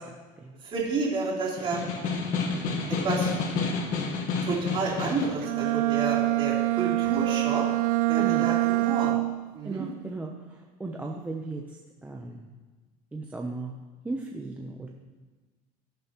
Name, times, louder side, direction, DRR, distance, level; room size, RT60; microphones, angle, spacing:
voice 1, 0.6-1.8 2.3-2.5 2.9-3.3 4.4-7.7 8.1-9.2 9.5-9.9, right 3 dB, 30° right, -5 dB, 3.4 m, -30 dB
Snare drum, 1.6-5.4, left 4 dB, 55° left, 1.4 m, -29 dB
Bowed string instrument, 5.4-9.5, right 18 dB, 75° right, 0.4 m, -25 dB
voice 2, 8.2-8.5 9.6-11.6 12.0-12.5 13.1-13.7 14.0-14.9, right 3 dB, 10° right, 0 dB, 0.7 m, -36 dB
20.0 x 6.9 x 3.0 m, 1.3 s
cardioid pair, 150°, 17 cm